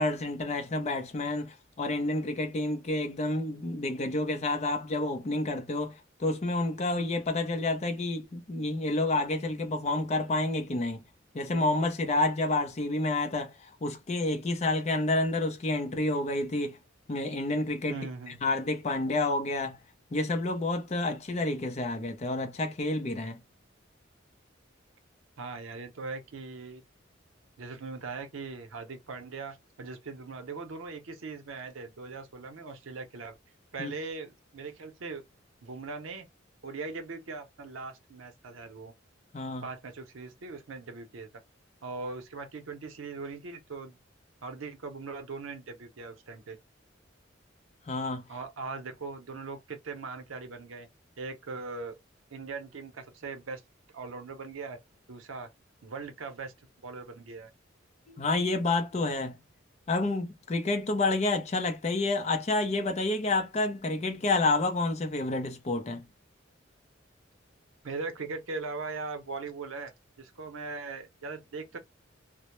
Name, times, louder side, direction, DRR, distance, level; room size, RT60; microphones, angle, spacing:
voice 1, 0.0-11.0 11.3-16.8 17.1-18.0 18.4-19.8 20.1-23.4 33.8-33.9 39.3-39.7 47.9-48.2 58.1-59.3 59.9-66.0, left 2 dB, 35° left, 0.5 m, -29 dB
voice 2, 17.9-18.4 25.4-26.8 27.6-33.3 33.7-35.2 35.6-36.3 36.6-38.9 39.6-41.3 41.8-44.0 44.4-46.6 48.3-50.9 51.2-52.0 52.3-53.6 53.9-54.8 55.1-55.5 55.8-56.5 56.8-57.5 67.8-71.8, right 4 dB, 90° right, 0.6 m, -40 dB
2.1 x 2.0 x 2.9 m
head